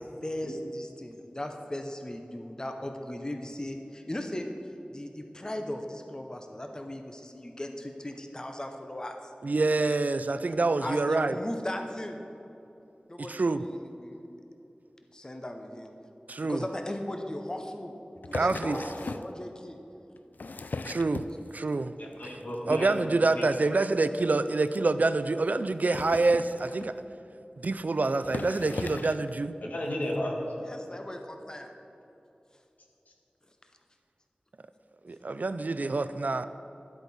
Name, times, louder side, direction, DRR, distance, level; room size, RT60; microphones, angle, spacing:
voice 1, 0.2-4.5 4.9-9.3 10.4-10.5 10.8-12.2 13.1-14.3 15.1-15.9 16.4-17.9 18.2-18.7 19.0-19.8 30.6-31.7, left 1 dB, 25° left, 4 dB, 0.7 m, -37 dB
voice 2, 9.4-11.3 13.3-13.6 16.3-16.6 18.3-18.8 20.9-21.3 21.5-21.9 22.7-27.0 27.6-29.6 35.0-36.5, right 3 dB, 65° right, 12 dB, 0.3 m, -26 dB
sound 1, 18.2-19.3 20.2-21.7 22.1-22.5 22.8-23.0 23.2-23.3 23.5-23.6 24.0-24.1 24.7-24.8 25.7-27.1 27.8-27.9 28.2-29.3 30.1-30.2, left 3 dB, 80° left, 0.4 m, -38 dB
voice 3, 22.0-23.4 29.6-30.3, left 1 dB, 65° left, -1 dB, 1.6 m, -34 dB
12.0 x 8.1 x 4.2 m, 2.9 s
wide cardioid pair, 65°, 3 cm